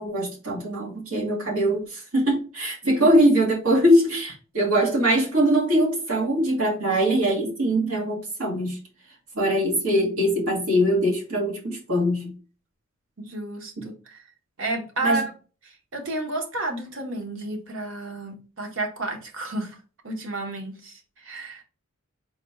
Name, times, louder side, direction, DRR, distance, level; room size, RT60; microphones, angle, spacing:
voice 1, 0.0-8.8 9.3-12.3 13.8-13.9 15.0-15.2, equal, 90° right, 1.5 m, -22 dB
voice 2, 13.2-14.2 14.6-15.3 15.9-19.7 20.0-21.6, right 2 dB, 65° right, 1.1 m, -31 dB
4.2 x 2.3 x 4.3 m
head